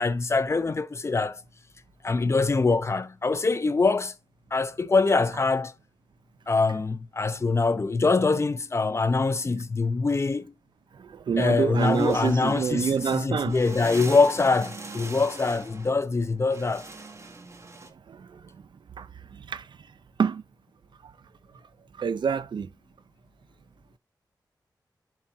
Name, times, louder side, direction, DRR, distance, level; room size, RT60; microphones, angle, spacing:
voice 1, 0.0-1.4 2.0-4.1 4.5-5.7 6.5-10.5 11.4-16.9, left 3 dB, 35° left, 0.7 m, -24 dB
voice 2, 10.9-13.6 17.9-18.6 19.0-19.8 20.2-20.4 21.0-21.1 22.0-22.7, right 6 dB, 85° right, 0.5 m, -28 dB
sound 1, 11.4-17.9, right 2 dB, 40° right, 1.5 m, -42 dB
7.6 x 4.3 x 3.7 m
wide cardioid pair, 110°, 8 cm